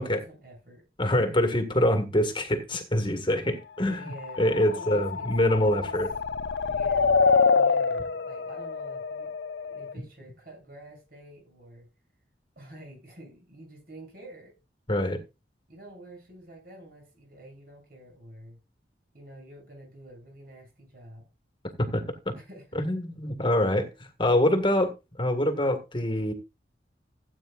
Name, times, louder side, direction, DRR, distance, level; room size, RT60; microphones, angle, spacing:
voice 1, 0.0-0.8 3.9-5.9 6.7-9.3 9.6-11.9 12.6-14.6 15.7-18.6 19.1-21.3 22.3-22.8, right 1 dB, 55° right, 7.8 m, -48 dB
voice 2, 1.0-4.0 4.4-6.1 14.9-15.2 21.8-22.0 22.8-23.9 24.2-24.9 25.2-26.3, left 1 dB, 30° left, 1.7 m, -25 dB
sound 1, 4.1-9.9, left 5 dB, 85° left, 0.6 m, -26 dB
16.5 x 9.0 x 2.5 m
head